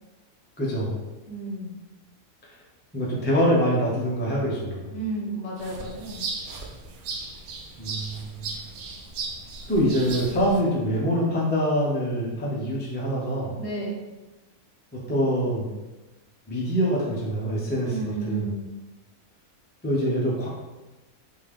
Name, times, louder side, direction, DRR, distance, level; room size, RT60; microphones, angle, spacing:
voice 1, 0.6-1.0 2.9-4.9 7.8-8.4 9.7-13.6 14.9-15.7 16.5-18.5 19.8-20.5, equal, 15° left, -5 dB, 0.4 m, -25 dB
voice 2, 1.3-1.7 4.9-6.2 13.6-14.0 17.9-18.6, right 3 dB, 55° left, -3 dB, 1.0 m, -32 dB
sound 1, 5.6-10.6, right 3 dB, 80° right, 1.1 m, -36 dB
3.5 x 2.6 x 3.2 m, 1.1 s
omnidirectional pair, 1.5 m